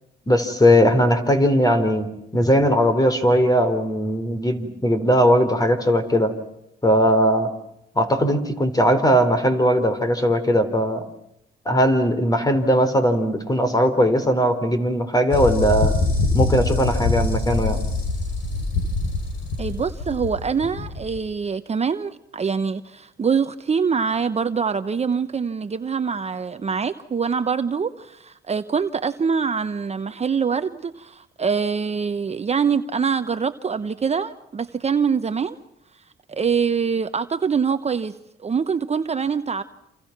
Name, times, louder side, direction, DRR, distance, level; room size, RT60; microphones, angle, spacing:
voice 1, 0.3-6.3 6.8-7.5 8.0-11.0 11.7-16.0 16.3-17.8, equal, 20° left, 3.8 m, -19 dB
sound 1, 15.3-21.2, left 3 dB, 70° left, 6.1 m, -24 dB
voice 2, 19.6-35.6 36.3-38.1 38.4-39.6, right 6 dB, 35° right, 0.9 m, -24 dB
29.0 x 27.5 x 6.0 m
cardioid pair, 90°, 20 cm